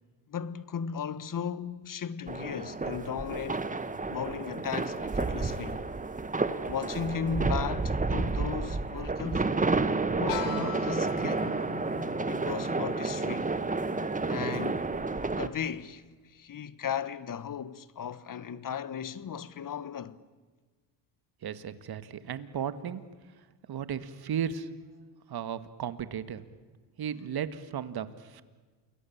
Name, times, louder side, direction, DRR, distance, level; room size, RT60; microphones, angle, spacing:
voice 1, 0.3-3.7 4.1-5.8 6.7-9.7 10.2-11.5 12.3-13.5 14.3-14.9 15.3-20.2, left 7 dB, 40° left, 1.4 m, -36 dB
sound 1, 2.3-15.5, right 3 dB, 15° right, 1.5 m, -30 dB
sound 2, 10.3-16.1, left 9 dB, 85° left, 2.7 m, -42 dB
voice 2, 21.4-23.0 23.7-24.7 25.3-26.4 27.0-28.4, right 8 dB, 45° right, 2.0 m, -35 dB
29.0 x 21.5 x 8.8 m
supercardioid pair, 85°, 50 cm